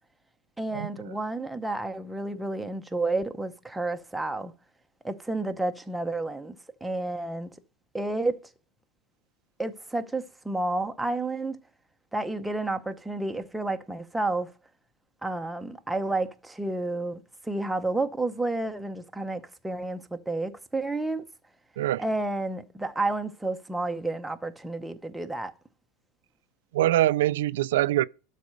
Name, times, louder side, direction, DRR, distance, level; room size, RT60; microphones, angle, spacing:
voice 1, 0.6-4.5 5.0-7.5 7.9-8.4 9.6-11.6 12.1-14.5 15.2-21.2 22.0-25.5, right 2 dB, 5° right, 0.7 m, -30 dB
voice 2, 26.7-28.0, right 14 dB, 90° right, 0.4 m, -23 dB
12.0 x 4.1 x 6.5 m
supercardioid pair, 165°, 0 cm